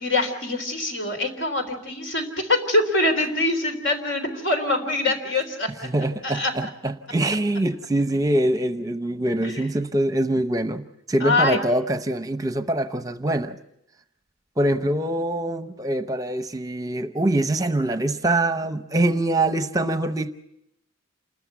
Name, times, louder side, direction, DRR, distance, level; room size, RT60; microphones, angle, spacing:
voice 1, 0.0-5.7 6.2-6.5 9.4-9.7 11.2-11.6, left 2 dB, 65° left, 3.7 m, -24 dB
voice 2, 5.8-13.6 14.6-20.3, right 1 dB, 20° right, 0.8 m, -24 dB
28.0 x 13.5 x 8.1 m
head